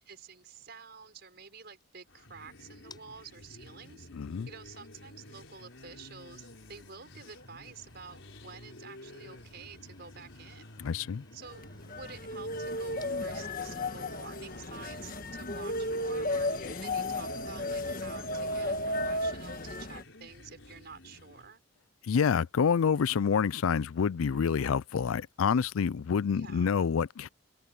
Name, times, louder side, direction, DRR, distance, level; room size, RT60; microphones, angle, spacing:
voice 1, 0.1-4.1 4.5-10.7 11.3-16.5 16.8-21.6 26.3-26.7, right 5 dB, 50° right, 5.7 m, -49 dB
sound 1, 1.1-19.8, left 4 dB, 20° left, 7.2 m, -65 dB
sound 2, 2.1-21.6, left 1 dB, 65° left, 5.4 m, -51 dB
voice 2, 4.1-4.5 10.8-11.2 22.0-27.3, left 6 dB, 80° left, 0.4 m, -27 dB
sound 3, 11.5-20.0, left 1 dB, 40° left, 1.5 m, -34 dB
open air
head